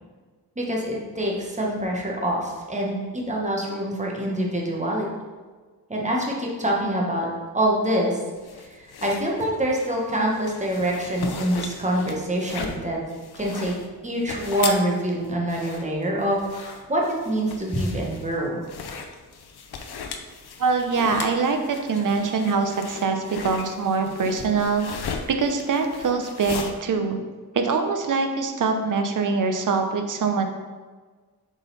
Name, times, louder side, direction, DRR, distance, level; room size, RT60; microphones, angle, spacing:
voice 1, 0.6-2.9 3.3-5.1 5.9-7.3 7.5-8.2 8.6-13.0 13.3-13.7 14.0-18.6, right 1 dB, 20° right, -2 dB, 1.1 m, -25 dB
sound 1, 8.4-26.7, left 5 dB, 85° left, 0.7 m, -37 dB
voice 2, 20.6-24.9 25.3-27.2 27.5-30.4, right 4 dB, 55° right, 5 dB, 0.7 m, -23 dB
7.2 x 3.9 x 4.0 m, 1.4 s
wide cardioid pair, 165°, 38 cm